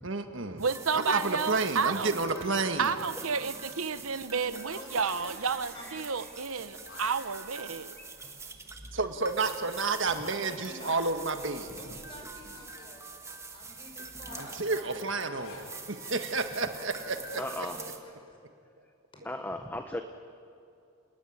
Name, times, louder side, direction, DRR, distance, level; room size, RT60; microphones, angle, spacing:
voice 1, 0.0-0.6 0.9-2.9 8.9-11.7 14.4-17.4, right 3 dB, 60° right, 7 dB, 1.7 m, -30 dB
sound 1, 0.6-18.0, right 4 dB, 15° right, 1.6 m, -45 dB
voice 2, 0.6-2.2 2.8-7.9, right 5 dB, 80° right, 12 dB, 1.0 m, -31 dB
Zipper (clothing), 2.8-3.8 4.1-4.3 4.6-6.3 6.5-7.5 8.1-8.2 8.8-8.9 9.3-9.4 9.7-9.8 10.0-10.1 10.7-11.1 11.5-11.6 11.8-13.1 14.1-15.7 16.3-17.7, left 2 dB, 60° left, 4.9 m, -53 dB
voice 3, 4.5-5.1 5.7-6.2 9.9-13.0 13.5-15.1 17.1-18.4 19.1-19.2, left 1 dB, 25° left, 1 dB, 5.6 m, -49 dB
voice 4, 17.4-17.8 19.2-20.0, left 1 dB, 10° left, 6 dB, 1.0 m, -37 dB
28.5 x 18.5 x 9.4 m, 2.4 s
head